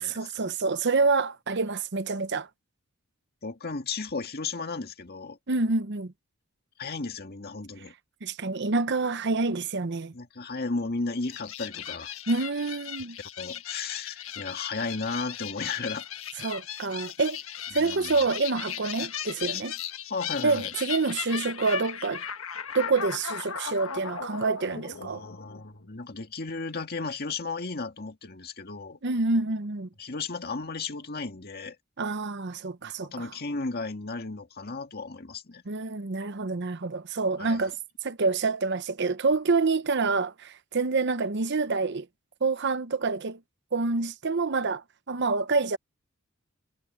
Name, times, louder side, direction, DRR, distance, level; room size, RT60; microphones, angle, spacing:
voice 1, 0.0-2.5 5.5-6.1 8.2-10.1 12.3-13.2 16.4-17.4 17.7-19.7 20.4-22.2 22.7-25.2 29.0-29.9 32.0-33.3 35.7-37.8 38.0-42.1 42.4-43.4 43.7-45.8, right 3 dB, 55° right, 0.8 m, -27 dB
voice 2, 3.4-5.4 6.8-7.9 10.1-12.1 13.4-16.1 17.8-18.2 20.1-20.7 25.0-29.0 30.0-31.8 32.8-35.6 37.4-37.6, left 4 dB, 45° left, 2.0 m, -34 dB
sound 1, 11.2-25.9, left 9 dB, 65° left, 1.6 m, -37 dB
head